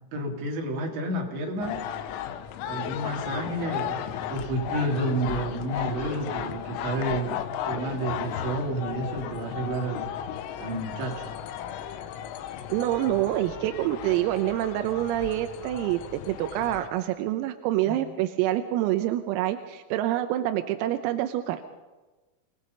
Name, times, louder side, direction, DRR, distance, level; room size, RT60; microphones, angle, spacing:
voice 1, 0.1-1.8 2.7-7.4 7.6-10.1 10.6-11.3 17.9-18.0, right 1 dB, 60° right, -1 dB, 5.7 m, -30 dB
sound 1, 1.6-16.9, left 9 dB, 90° left, 3.9 m, -35 dB
voice 2, 12.7-21.6, right 13 dB, 90° right, 7 dB, 3.6 m, -27 dB
28.0 x 19.5 x 5.5 m, 1.2 s
omnidirectional pair, 6.0 m